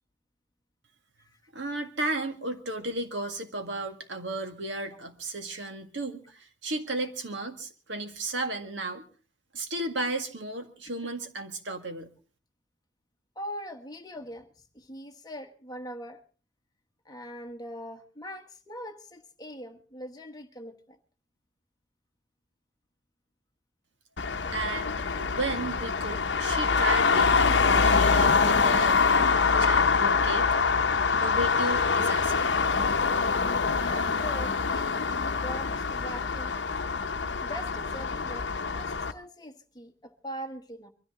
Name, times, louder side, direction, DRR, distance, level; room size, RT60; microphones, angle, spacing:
voice 1, 1.5-9.0 9.5-12.1 24.5-30.5 31.1-32.5, right 2 dB, 75° right, 2.0 m, -34 dB
voice 2, 13.3-14.5 14.7-16.2 17.0-21.0 33.7-36.6 37.4-40.9, equal, 20° left, 1.3 m, -41 dB
Traffic noise roadway noise, 24.2-39.1, left 5 dB, 65° left, 0.8 m, -25 dB
23.5 x 13.5 x 3.8 m
head